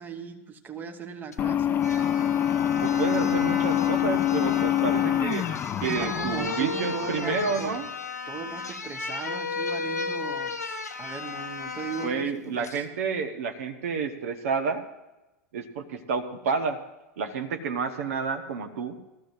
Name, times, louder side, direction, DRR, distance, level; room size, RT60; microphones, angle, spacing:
voice 1, 0.0-1.9 5.8-7.7 8.3-12.9, right 5 dB, 20° right, 6 dB, 1.2 m, -38 dB
sound 1, 1.3-1.4 1.8-12.2 12.6-12.8, left 4 dB, 85° left, 1.0 m, -34 dB
sound 2, 1.4-7.8, left 10 dB, 25° left, 0.4 m, -26 dB
voice 2, 2.8-5.5 5.8-7.9 12.0-14.8 15.5-16.8 17.2-19.0, right 5 dB, 60° right, 6 dB, 1.2 m, -30 dB
19.5 x 14.0 x 2.7 m, 1.0 s
figure-of-eight pair, 95°, 9 cm